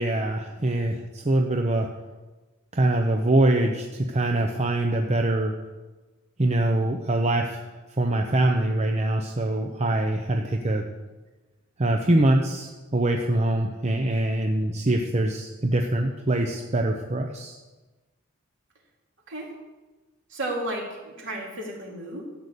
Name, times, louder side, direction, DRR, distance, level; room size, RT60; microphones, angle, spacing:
voice 1, 0.0-1.9 2.7-5.5 6.4-7.7 8.0-10.8 11.8-17.6, right 1 dB, 30° right, 3 dB, 0.8 m, -24 dB
voice 2, 20.3-22.2, right 1 dB, 60° right, -2 dB, 3.3 m, -33 dB
13.5 x 6.6 x 8.3 m, 1.2 s
head